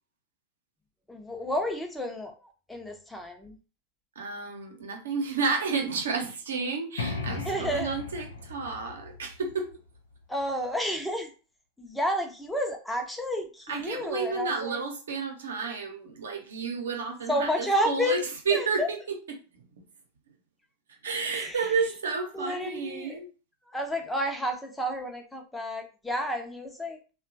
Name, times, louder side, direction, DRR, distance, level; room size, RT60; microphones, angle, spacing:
voice 1, 1.1-3.6 7.5-8.0 10.3-11.3 11.8-14.8 17.3-18.2 18.5-18.9 21.3-21.6 22.3-23.2 23.7-27.0, equal, 5° left, 0.7 m, -31 dB
voice 2, 4.1-9.7 13.7-19.6 20.9-23.3, right 4 dB, 80° right, 0.8 m, -31 dB
sound 1, 7.0-10.6, left 4 dB, 80° left, 0.4 m, -37 dB
2.8 x 2.3 x 2.6 m
hypercardioid pair, 95°, 0 cm